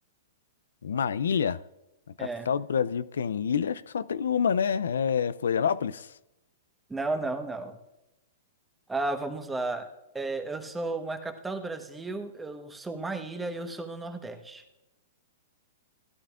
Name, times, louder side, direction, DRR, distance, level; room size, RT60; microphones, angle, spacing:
voice 1, 0.8-1.6 2.2-6.1, left 7 dB, 80° left, 0.4 m, -27 dB
voice 2, 2.2-2.5 6.9-7.8 8.9-9.9 10.1-14.6, right 2 dB, 10° right, 1.1 m, -33 dB
16.5 x 11.5 x 2.4 m
hypercardioid pair, 125°, 0 cm